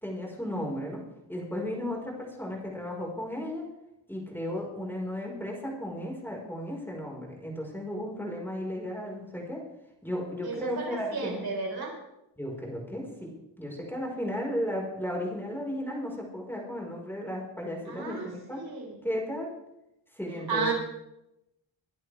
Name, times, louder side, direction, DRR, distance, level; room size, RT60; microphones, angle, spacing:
voice 1, 0.0-1.0 1.3-3.7 4.1-9.6 10.0-11.4 12.4-13.3 13.6-18.6 19.0-19.5 20.1-20.7, equal, 5° left, -2 dB, 5.2 m, -34 dB
voice 2, 10.4-11.9 17.9-18.3 18.5-18.9 20.5-20.7, right 4 dB, 50° right, 0 dB, 5.0 m, -32 dB
24.0 x 10.5 x 3.6 m, 0.86 s
wide cardioid pair, 100°, 47 cm